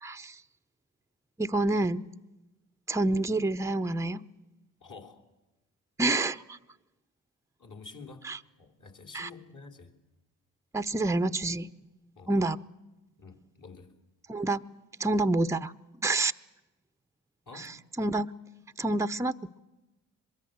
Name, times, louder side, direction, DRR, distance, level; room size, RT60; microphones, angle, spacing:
voice 1, 0.0-0.4 1.4-2.1 2.9-4.2 6.0-6.6 8.2-8.4 9.1-9.3 10.7-11.7 12.3-12.6 14.3-14.6 15.0-15.7 16.0-16.3 17.6-17.7 18.0-18.3 18.8-19.6, right 2 dB, 5° right, 12 dB, 0.7 m, -28 dB
voice 2, 4.8-5.3 7.6-8.3 8.6-10.0 12.2-12.3 13.2-13.9 17.5-17.8, left 4 dB, 50° left, 4 dB, 3.5 m, -48 dB
23.0 x 22.5 x 7.9 m, 1.1 s
hypercardioid pair, 40°, 40 cm